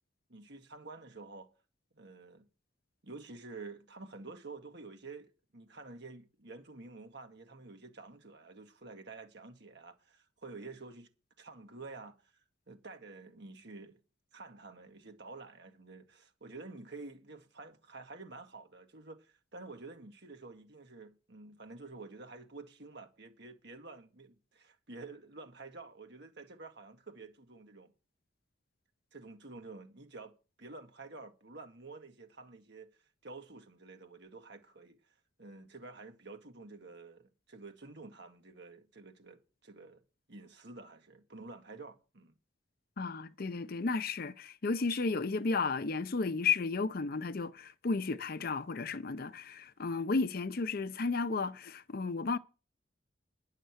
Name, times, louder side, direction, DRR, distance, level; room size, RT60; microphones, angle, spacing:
voice 1, 0.3-1.5 1.9-2.4 3.0-11.1 11.4-12.3 12.7-14.0 14.3-27.9 29.1-30.3 30.6-32.9 33.2-35.0 35.4-40.0 40.3-42.3, right 3 dB, 60° right, 1.7 m, -49 dB
voice 2, 43.0-52.4, left 4 dB, 50° left, 0.6 m, -33 dB
10.0 x 6.5 x 7.9 m
head